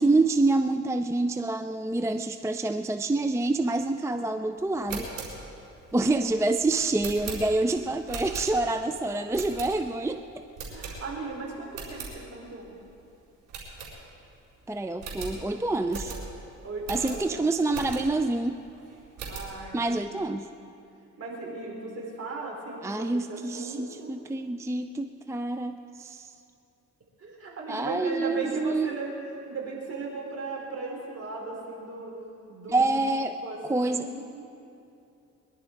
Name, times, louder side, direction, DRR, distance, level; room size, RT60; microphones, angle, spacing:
voice 1, 0.0-5.1 5.9-10.2 14.7-16.1 16.9-18.6 19.7-20.5 22.8-26.3 27.7-28.9 32.7-33.4 33.6-34.1, right 2 dB, 10° right, 8 dB, 0.5 m, -27 dB
sound 1, 4.7-8.9 9.3-10.1 10.5-11.3 11.6-12.1 12.6-12.7 12.9-13.0 13.5-14.4 14.6-14.7 15.0-18.3 18.7-19.6, right 4 dB, 90° right, 4.3 m, -39 dB
voice 2, 10.7-12.8 16.6-17.4 19.2-20.4 21.2-24.1 27.2-32.1 32.5-33.1 33.4-34.4, right 3 dB, 50° right, -2 dB, 4.6 m, -37 dB
23.0 x 11.5 x 4.6 m, 2.7 s
cardioid pair, 90°, 30 cm